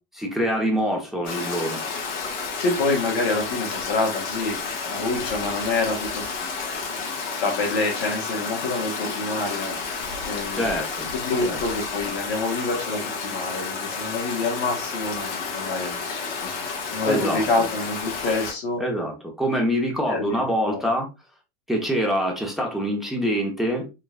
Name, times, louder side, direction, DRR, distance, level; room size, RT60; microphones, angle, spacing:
voice 1, 0.1-1.8 10.5-11.1 11.4-11.6 17.0-17.7 18.8-21.1 21.7-23.9, equal, ahead, 0 dB, 1.0 m, -25 dB
Stream, 1.2-18.5, left 4 dB, 70° left, 1.4 m, -31 dB
voice 2, 2.6-4.6 4.9-6.3 7.4-9.8 10.2-10.7 11.1-16.5 16.9-18.8 20.1-20.9, left 3 dB, 85° left, 0 dB, 1.5 m, -27 dB
3.7 x 3.0 x 2.4 m, 0.26 s
hypercardioid pair, 100°, 31 cm